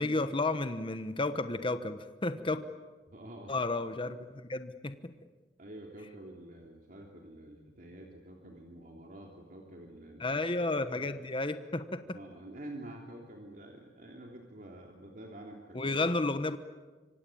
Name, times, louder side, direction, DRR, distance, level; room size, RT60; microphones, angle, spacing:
voice 1, 0.0-2.6 3.5-5.1 10.2-12.0 15.7-16.6, left 2 dB, 30° left, 10 dB, 1.1 m, -32 dB
voice 2, 3.1-3.6 5.6-10.4 10.9-11.2 12.1-15.9, right 1 dB, 50° right, 0 dB, 3.3 m, -48 dB
26.0 x 24.5 x 8.7 m, 1.3 s
head